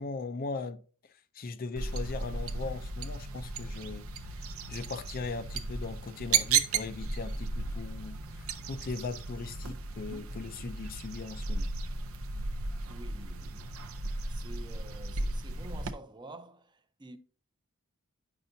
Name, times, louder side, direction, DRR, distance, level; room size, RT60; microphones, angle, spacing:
voice 1, 0.0-4.1 4.7-11.7, left 4 dB, 45° left, 0.4 m, -39 dB
sound 1, 1.8-15.9, right 4 dB, 70° right, 0.6 m, -35 dB
voice 2, 12.9-13.8 14.3-17.2, right 2 dB, 20° right, 0.6 m, -49 dB
9.0 x 5.7 x 2.6 m
head